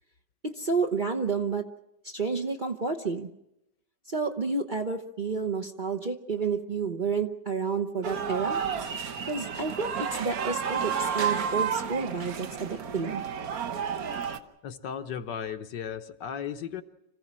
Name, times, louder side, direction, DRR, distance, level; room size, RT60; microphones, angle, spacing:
voice 1, 0.4-1.6 2.0-3.3 4.1-8.6 9.3-13.2, right 4 dB, 35° right, 4 dB, 0.9 m, -30 dB
sound 1, 8.0-14.4, right 7 dB, 55° right, 1.4 m, -31 dB
voice 2, 14.6-16.8, left 8 dB, 75° left, 8 dB, 1.6 m, -35 dB
26.5 x 15.5 x 7.4 m, 0.86 s
omnidirectional pair, 1.9 m